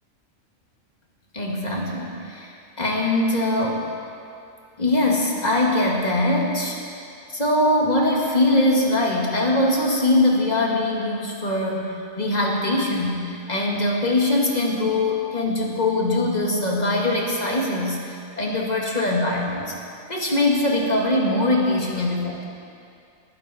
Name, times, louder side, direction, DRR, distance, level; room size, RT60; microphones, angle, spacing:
voice 1, 1.3-2.5 2.8-3.8 4.8-6.8 7.3-19.7 20.1-22.4, left 1 dB, 30° left, -2 dB, 2.0 m, -22 dB
20.5 x 9.8 x 4.2 m, 2.5 s
omnidirectional pair, 1.4 m